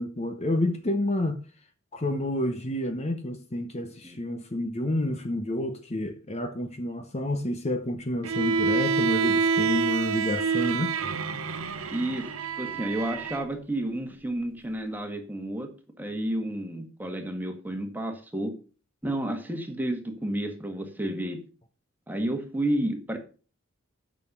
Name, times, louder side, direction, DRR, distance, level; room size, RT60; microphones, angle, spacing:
voice 1, 0.0-1.4 1.9-11.0, left 1 dB, 30° left, 0.9 m, -29 dB
Bowed string instrument, 8.2-13.5, right 5 dB, 85° right, 0.8 m, -27 dB
voice 2, 11.9-12.3 12.6-15.7 16.0-18.5 19.0-21.4 22.1-23.2, right 1 dB, 10° right, 1.7 m, -31 dB
9.1 x 6.4 x 6.7 m
head